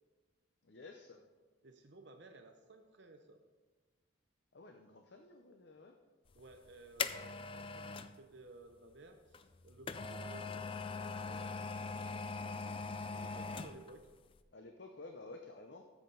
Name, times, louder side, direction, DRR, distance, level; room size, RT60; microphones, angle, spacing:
voice 1, 0.7-1.2 4.5-5.9 14.5-15.8, left 3 dB, 55° left, 4 dB, 0.7 m, -52 dB
voice 2, 1.6-3.4 6.3-14.1, right 2 dB, 55° right, 4 dB, 0.7 m, -57 dB
sound 1, 6.4-8.2 9.3-14.0 14.3-14.4, left 4 dB, 25° left, 0.3 m, -41 dB
13.5 x 7.3 x 3.9 m, 1.4 s
head